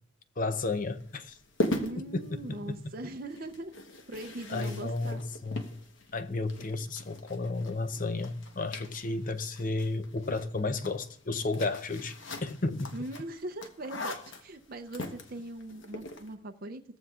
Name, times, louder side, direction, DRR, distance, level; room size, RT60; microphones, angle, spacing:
voice 1, 0.4-1.4 2.0-2.8 4.5-5.7 6.1-12.9, left 3 dB, 35° left, 0.6 m, -33 dB
sound 1, 0.7-16.3, left 1 dB, 55° left, 1.1 m, -41 dB
voice 2, 1.8-3.8 4.1-5.2 12.9-16.8, right 1 dB, 40° right, 0.6 m, -40 dB
17.5 x 14.5 x 2.4 m
head